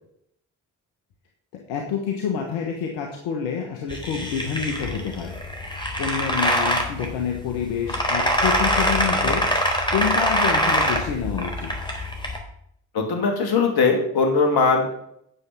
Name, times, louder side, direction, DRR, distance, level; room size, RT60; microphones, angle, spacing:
voice 1, 1.5-5.3 6.0-9.4 9.9-11.7, left 7 dB, 85° left, 2 dB, 1.4 m, -27 dB
sound 1, 3.9-12.4, equal, 10° left, 3.9 m, -24 dB
voice 2, 12.9-15.0, left 4 dB, 65° left, 3 dB, 2.9 m, -20 dB
9.6 x 6.9 x 6.2 m, 0.72 s
hypercardioid pair, 45°, 40 cm